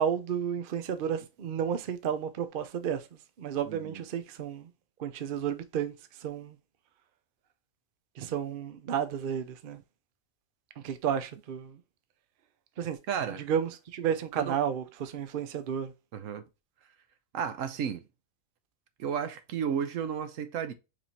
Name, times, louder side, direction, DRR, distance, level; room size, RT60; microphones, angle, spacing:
voice 1, 0.0-3.0 3.4-4.7 5.0-5.9 6.2-6.6 8.2-9.8 10.8-11.8 12.8-13.0 13.5-15.9, right 8 dB, 50° right, 0.7 m, -32 dB
voice 2, 3.7-4.0 13.1-13.4 14.4-14.5 16.1-16.4 17.3-18.0 19.0-20.7, right 8 dB, 75° right, 1.1 m, -33 dB
5.0 x 3.4 x 2.8 m
omnidirectional pair, 1.4 m